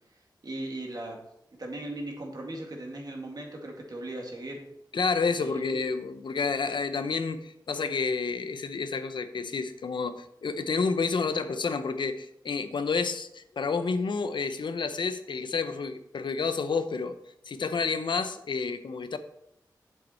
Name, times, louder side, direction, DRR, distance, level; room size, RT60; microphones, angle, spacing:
voice 1, 0.4-1.2 1.6-4.6 5.4-5.6, right 1 dB, 60° right, 0 dB, 2.3 m, -38 dB
voice 2, 4.9-17.2 17.5-19.2, left 4 dB, 85° left, 10 dB, 0.7 m, -30 dB
8.0 x 7.3 x 4.4 m, 0.78 s
wide cardioid pair, 65°, 8 cm